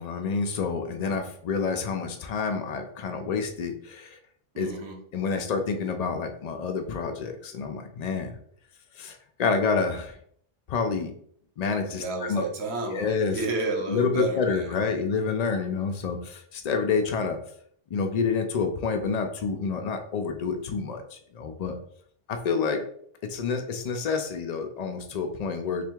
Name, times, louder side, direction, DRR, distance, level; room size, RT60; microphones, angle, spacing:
voice 1, 0.0-4.2 4.6-4.7 5.1-8.3 8.9-10.2 10.7-11.1 11.6-12.0 12.3-12.4 12.8-13.4 13.9-17.4 17.9-21.8 22.3-22.8 23.2-25.9, left 5 dB, 85° left, 5 dB, 0.3 m, -28 dB
voice 2, 4.5-5.0 11.9-15.0, right 2 dB, 60° right, 3 dB, 1.0 m, -32 dB
3.3 x 2.5 x 4.5 m, 0.62 s
omnidirectional pair, 1.3 m